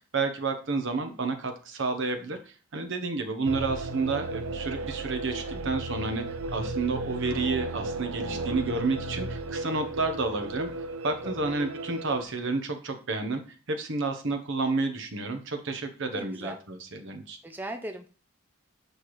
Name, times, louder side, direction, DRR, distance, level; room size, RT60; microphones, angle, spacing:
voice 1, 0.1-10.7 11.0-13.4 13.7-17.4, right 3 dB, 60° right, 6 dB, 1.0 m, -30 dB
sound 1, 3.5-12.2, right 2 dB, 75° right, 0.6 m, -35 dB
voice 2, 5.5-5.9 11.2-11.6 16.1-16.6 17.4-18.1, right 1 dB, 10° right, 6 dB, 0.4 m, -40 dB
7.9 x 4.4 x 3.1 m, 0.36 s
head